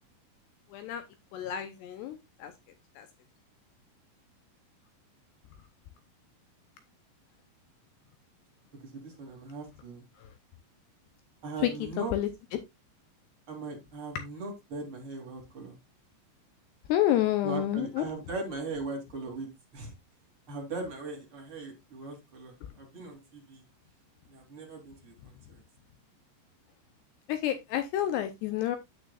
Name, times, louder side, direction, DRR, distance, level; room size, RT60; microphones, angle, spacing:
voice 1, 0.7-1.0 1.3-2.5 3.0-3.1 11.6-12.3 16.9-18.1 27.3-28.8, left 12 dB, 75° left, 2.6 m, -29 dB
voice 2, 8.8-10.0 11.4-12.1 13.5-15.8 17.4-19.5 19.7-19.9 20.5-23.6 24.3-25.1 25.5-25.6, right 3 dB, 30° right, 3.3 m, -39 dB
9.2 x 8.6 x 2.4 m
omnidirectional pair, 5.4 m